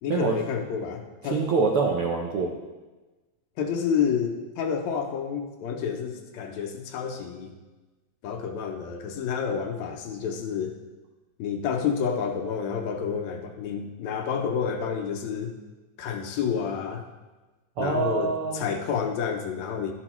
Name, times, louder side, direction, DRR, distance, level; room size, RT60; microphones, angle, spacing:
voice 1, 0.0-1.5 3.6-7.5 8.2-10.8 11.4-15.5 16.0-17.0 17.8-19.9, left 7 dB, 75° left, 3 dB, 2.0 m, -29 dB
voice 2, 1.2-2.5 17.8-18.6, right 4 dB, 75° right, -1 dB, 1.3 m, -25 dB
12.0 x 6.2 x 3.0 m, 1.2 s
omnidirectional pair, 3.4 m